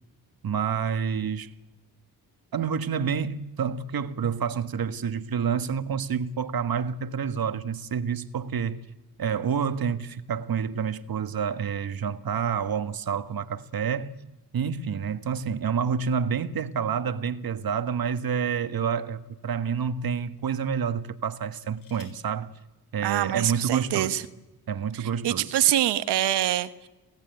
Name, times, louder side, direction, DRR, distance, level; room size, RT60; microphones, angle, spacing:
voice 1, 0.4-1.5 2.5-8.8 9.2-14.2 14.5-22.5 22.9-24.2 24.7-25.5, right 7 dB, 60° right, 1.5 m, -28 dB
sound 1, 21.4-22.4 23.5-23.6 23.9-24.3, left 5 dB, 55° left, 7.3 m, -58 dB
voice 2, 23.0-24.2 24.9-26.9, right 12 dB, 85° right, 1.2 m, -25 dB
28.5 x 15.0 x 9.3 m
supercardioid pair, 50°, 40 cm